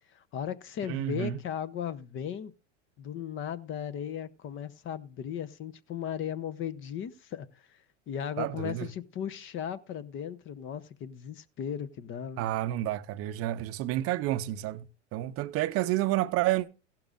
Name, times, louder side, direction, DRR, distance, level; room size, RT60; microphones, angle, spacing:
voice 1, 0.1-2.5 3.0-7.8 8.1-12.5, left 9 dB, 30° left, 0.8 m, -36 dB
voice 2, 0.9-1.4 8.4-8.9 12.4-14.9 15.1-16.7, right 15 dB, 40° right, 0.7 m, -30 dB
15.5 x 11.5 x 2.5 m
hypercardioid pair, 110°, 38 cm